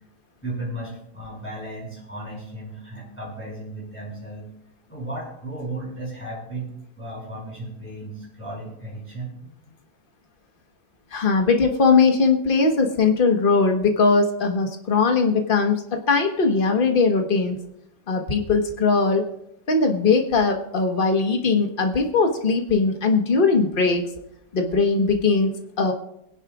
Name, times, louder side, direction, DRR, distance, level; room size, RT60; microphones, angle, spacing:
voice 1, 0.4-4.5 4.9-6.7 7.0-9.8, right 1 dB, 5° left, -5 dB, 5.4 m, -35 dB
voice 2, 11.1-17.6 18.1-19.2 19.7-24.0 24.5-25.9, left 4 dB, 35° left, 4 dB, 1.2 m, -20 dB
23.0 x 11.0 x 2.4 m, 0.80 s
omnidirectional pair, 2.0 m